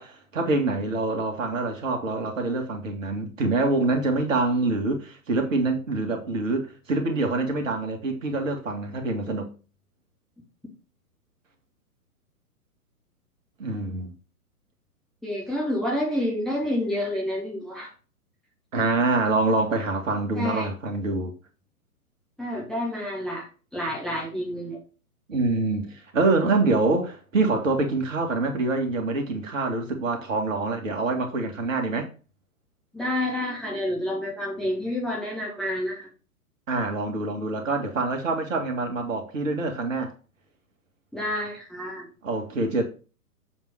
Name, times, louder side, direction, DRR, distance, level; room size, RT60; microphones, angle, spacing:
voice 1, 0.0-9.5 13.6-14.1 18.7-21.3 25.3-32.1 36.7-40.1 42.2-42.8, right 3 dB, 55° right, 2.0 m, -25 dB
voice 2, 15.2-17.9 20.3-20.7 22.4-23.5 23.7-24.8 32.9-36.1 41.1-42.0, left 1 dB, ahead, 1.0 m, -29 dB
7.2 x 3.8 x 6.2 m
figure-of-eight pair, 115°, 46 cm